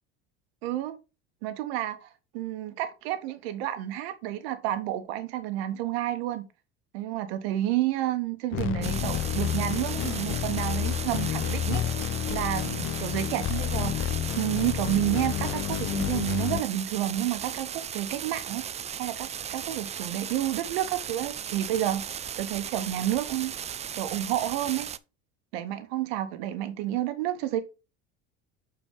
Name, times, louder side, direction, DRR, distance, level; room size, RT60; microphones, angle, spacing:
voice 1, 0.6-1.0 1.4-2.1 2.3-6.5 6.9-11.8 12.3-14.1 14.4-18.6 19.0-22.0 22.4-23.5 23.9-24.9 25.5-27.6, right 13 dB, 75° right, 1.2 m, -30 dB
sound 1, 8.5-16.6, left 11 dB, 40° left, 0.6 m, -30 dB
sound 2, 8.8-25.0, right 8 dB, 20° right, 0.4 m, -37 dB
7.1 x 4.5 x 3.6 m
hypercardioid pair, 85°, 31 cm